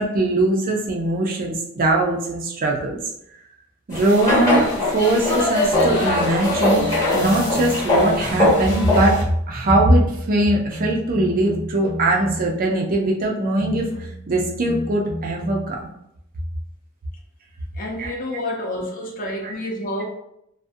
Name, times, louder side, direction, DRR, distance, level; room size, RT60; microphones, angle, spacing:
voice 1, 0.0-3.0 3.9-4.7 4.9-15.9 18.0-18.1 19.4-19.5, right 1 dB, 45° right, -1 dB, 0.4 m, -21 dB
sound 1, 3.9-9.2, left 1 dB, 15° left, 0.8 m, -21 dB
sound 2, 4.5-4.8 5.7-8.7 9.6-12.6 13.6-15.8, left 1 dB, 85° left, 0.5 m, -33 dB
voice 2, 17.7-20.0, left 1 dB, 40° left, -1 dB, 0.6 m, -29 dB
2.4 x 2.1 x 2.6 m, 0.77 s
head